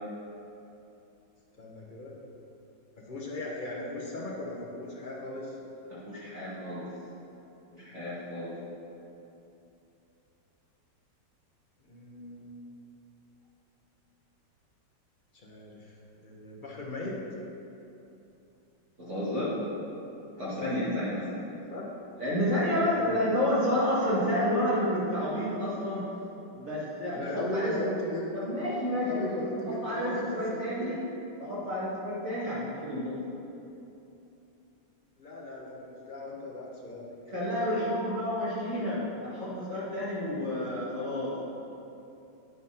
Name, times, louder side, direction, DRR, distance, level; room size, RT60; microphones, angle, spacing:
voice 1, 1.6-2.1 3.0-5.6 11.9-12.5 15.3-15.9 16.2-17.2 21.7-21.8 23.0-23.2 27.1-28.3 29.1-31.0 35.2-37.1 40.4-40.7, left 1 dB, 30° left, -3 dB, 1.0 m, -37 dB
voice 2, 5.9-6.9 7.7-8.6 19.0-19.6 20.4-21.2 22.2-26.1 26.5-27.7 28.3-29.3 29.7-31.0 31.4-33.2 37.3-41.3, left 1 dB, 40° right, -11 dB, 2.0 m, -30 dB
9.6 x 4.2 x 5.7 m, 2.9 s
omnidirectional pair, 2.1 m